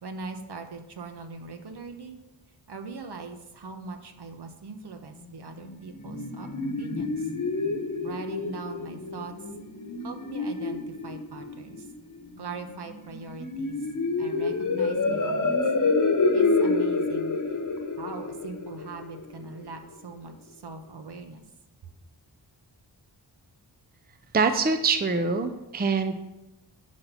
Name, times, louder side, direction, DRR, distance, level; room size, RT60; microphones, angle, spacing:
voice 1, 0.0-2.2 2.7-6.5 6.8-7.3 8.0-9.3 10.0-11.9 12.4-13.8 14.2-15.6 16.3-17.4 18.0-21.4, right 4 dB, 65° right, 6 dB, 1.1 m, -41 dB
sound 1, 5.6-19.6, left 3 dB, 45° left, 1.1 m, -28 dB
voice 2, 24.3-26.1, right 4 dB, 20° right, 8 dB, 0.6 m, -24 dB
11.0 x 4.4 x 5.6 m, 1.0 s
wide cardioid pair, 85°, 43 cm